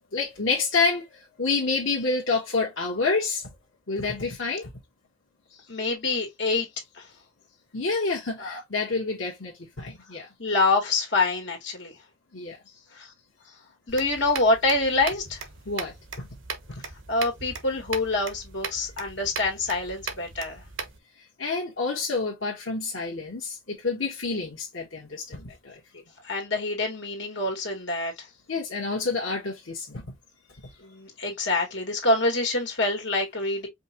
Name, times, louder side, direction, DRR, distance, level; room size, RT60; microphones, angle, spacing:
voice 1, 0.1-3.5 3.9-4.7 7.7-10.3 12.3-12.6 15.6-16.3 16.7-16.8 21.4-26.0 28.5-30.1, left 4 dB, 85° left, 1.4 m, -28 dB
voice 2, 5.7-6.7 7.0-7.1 8.4-8.6 10.4-11.9 12.9-13.1 13.9-15.4 17.1-20.6 26.2-28.3 30.8-33.7, left 2 dB, 65° left, 2.2 m, -26 dB
sound 1, 13.9-21.0, right 5 dB, 80° right, 1.1 m, -38 dB
5.3 x 3.0 x 2.9 m
head